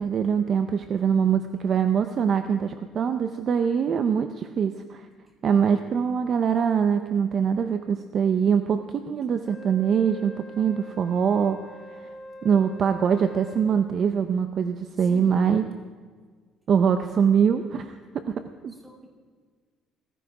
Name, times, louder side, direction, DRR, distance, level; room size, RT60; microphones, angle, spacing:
voice 1, 0.0-5.1 5.4-11.6 12.0-12.1 12.4-15.7 16.7-18.0 18.3-18.8, right 7 dB, 35° right, 8 dB, 0.5 m, -23 dB
Wind instrument woodwind instrument, 9.4-13.8, equal, 15° left, 2.5 m, -44 dB
voice 2, 15.0-15.6 18.7-19.1, left 1 dB, 10° right, 0 dB, 2.4 m, -46 dB
16.0 x 15.0 x 4.8 m, 1.6 s
cardioid pair, 175°, 0 cm